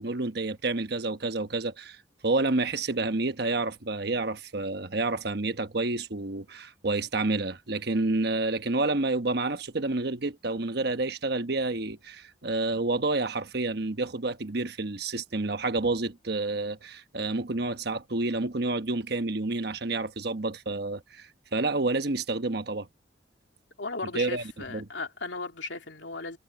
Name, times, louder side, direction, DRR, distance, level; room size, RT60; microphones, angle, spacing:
voice 1, 0.0-2.0 2.2-22.9 24.1-24.4 24.7-24.9, right 2 dB, 60° right, 1.1 m, -29 dB
voice 2, 23.8-26.4, left 3 dB, 80° left, 2.9 m, -36 dB
head